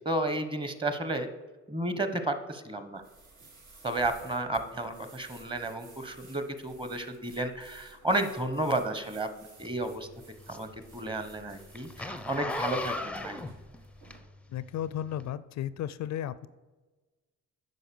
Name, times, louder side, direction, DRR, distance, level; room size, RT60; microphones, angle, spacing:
voice 1, 0.0-1.3 1.7-3.0 3.8-9.3 9.6-10.1 10.5-13.4, right 2 dB, 15° right, 9 dB, 1.0 m, -32 dB
sound 1, 2.9-14.2, right 3 dB, 75° right, 2.8 m, -55 dB
Zipper (clothing), 9.6-14.6 15.1-15.3, left 2 dB, 5° left, 0.5 m, -37 dB
voice 2, 14.5-16.5, left 11 dB, 65° left, 17 dB, 0.4 m, -34 dB
9.1 x 5.5 x 6.9 m, 1.3 s
cardioid pair, 90°, 30 cm